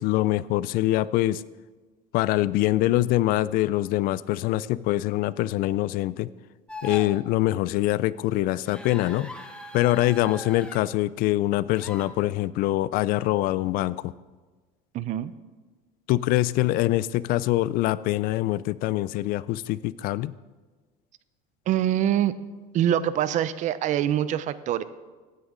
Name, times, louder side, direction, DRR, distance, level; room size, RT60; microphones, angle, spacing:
voice 1, 0.0-1.4 2.1-6.3 6.8-9.3 9.7-14.1 16.1-20.3, left 16 dB, 55° left, 19 dB, 0.4 m, -24 dB
sound 1, 6.7-7.1 8.7-10.8 11.7-12.1, left 1 dB, 5° left, 1.3 m, -39 dB
voice 2, 14.9-15.3 21.7-22.3 22.7-24.8, right 11 dB, 45° right, 15 dB, 0.6 m, -24 dB
16.0 x 9.6 x 3.8 m, 1.3 s
cardioid pair, 135°, 18 cm